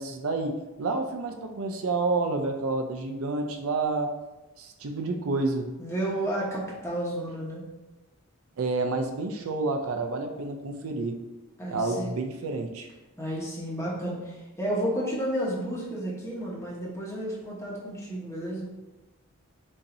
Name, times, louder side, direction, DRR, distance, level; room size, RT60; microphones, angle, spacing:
voice 1, 0.0-4.1 4.6-5.7 8.6-11.2 11.7-12.9, right 3 dB, 75° right, 5 dB, 0.5 m, -29 dB
voice 2, 5.8-7.6 11.6-12.1 13.2-18.6, right 1 dB, 10° left, -5 dB, 1.0 m, -31 dB
6.9 x 2.7 x 2.6 m, 1.1 s
head